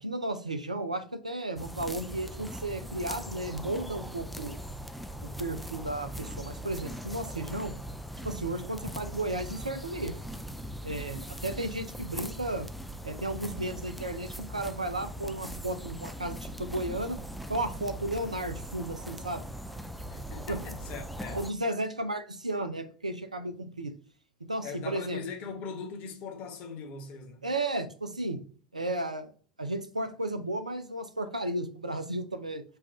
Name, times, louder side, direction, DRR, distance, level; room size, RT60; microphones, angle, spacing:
voice 1, 0.0-4.6 5.4-7.7 8.2-10.2 10.8-12.7 13.0-17.2 17.5-19.4 20.5-20.6 21.3-23.9 24.5-25.2 27.4-28.4 28.7-29.3 29.6-32.6, right 1 dB, 85° right, 0.5 m, -34 dB
sound 1, 1.6-21.5, equal, ahead, 0.4 m, -40 dB
voice 2, 20.1-21.4 24.6-27.5, left 5 dB, 40° left, 1.1 m, -40 dB
5.5 x 2.5 x 3.5 m
figure-of-eight pair, 85°, 4 cm